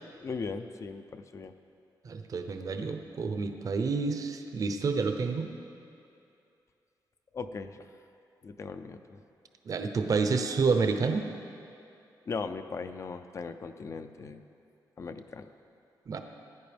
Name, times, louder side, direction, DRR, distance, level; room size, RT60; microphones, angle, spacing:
voice 1, 0.2-1.5 7.3-7.9 8.4-9.2 12.3-14.4 15.0-15.5, left 4 dB, 40° left, 9 dB, 0.4 m, -38 dB
voice 2, 2.0-5.5 9.7-11.3 16.1-16.2, right 4 dB, 50° right, 6 dB, 0.7 m, -29 dB
15.5 x 9.5 x 3.4 m, 2.6 s
wide cardioid pair, 140°, 8 cm